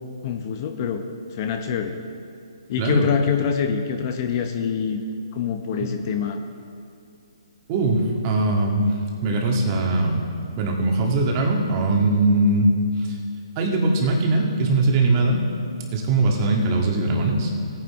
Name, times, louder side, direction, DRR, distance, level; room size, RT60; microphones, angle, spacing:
voice 1, 0.2-1.0 1.3-1.9 2.7-5.0 5.3-6.4, left 7 dB, 35° left, 5 dB, 0.8 m, -25 dB
voice 2, 2.8-3.1 5.8-5.9 7.7-8.8 9.2-10.2 10.6-12.7 13.0-13.2 13.6-15.4 15.9-17.5, right 2 dB, 30° right, 0 dB, 1.8 m, -21 dB
18.0 x 9.7 x 3.6 m, 2.4 s
hypercardioid pair, 145°, 3 cm